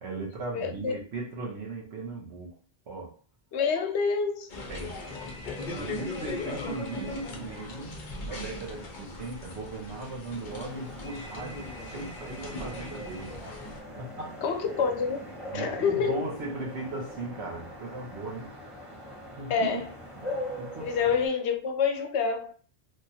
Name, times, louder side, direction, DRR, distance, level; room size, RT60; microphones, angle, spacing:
voice 1, 0.0-2.6 2.9-3.2 4.7-5.1 5.7-13.5 14.0-14.4 15.5-18.5 19.4-19.8 20.1-20.9, right 3 dB, 80° right, 1.2 m, -38 dB
voice 2, 0.5-1.0 3.5-4.5 14.4-15.2 15.5-16.3 19.5-19.8 20.8-22.5, left 6 dB, 85° left, 0.9 m, -27 dB
sound 1, 4.5-13.8, left 2 dB, 50° left, 0.8 m, -39 dB
sound 2, 10.5-21.3, left 1 dB, 30° left, 1.0 m, -42 dB
3.4 x 2.4 x 2.7 m
omnidirectional pair, 1.1 m